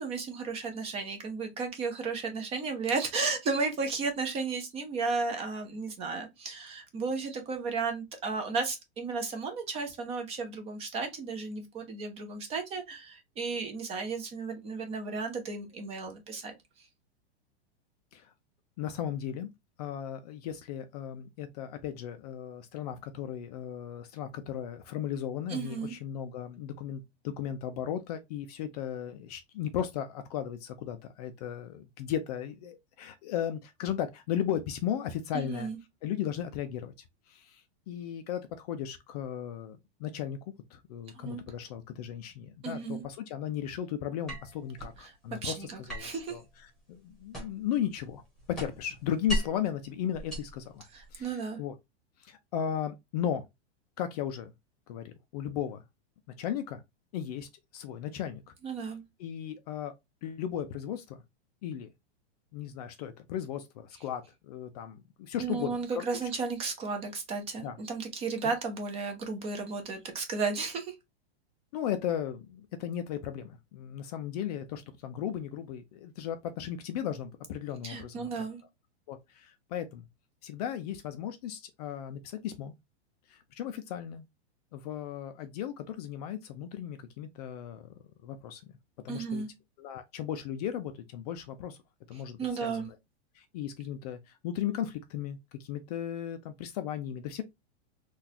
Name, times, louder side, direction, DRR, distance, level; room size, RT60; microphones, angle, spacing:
voice 1, 0.0-16.5 25.5-25.9 35.3-35.8 41.1-41.4 42.6-43.0 45.0-45.1 45.4-46.4 50.9-51.6 58.6-59.0 65.4-70.9 77.8-78.6 89.1-89.5 92.4-92.9, right 4 dB, 20° right, 0.6 m, -34 dB
voice 2, 18.8-19.5 19.8-35.7 36.0-36.9 37.3-48.2 48.5-50.8 51.1-51.7 52.2-53.5 54.0-54.5 54.9-55.8 56.4-56.8 57.1-58.4 59.2-59.9 60.2-61.2 61.6-61.9 62.5-66.0 67.6-67.8 68.4-68.5 71.7-78.4 79.1-80.0 80.4-82.7 83.3-84.3 84.7-87.9 88.2-88.6 89.0-89.4 89.8-91.8 92.1-92.9 93.4-97.4, left 9 dB, 40° left, 0.4 m, -36 dB
sound 1, 44.3-45.0 45.9-47.7 48.1-49.7 50.1-51.2, right 1 dB, ahead, 1.1 m, -37 dB
3.9 x 2.4 x 2.7 m
supercardioid pair, 155°, 33 cm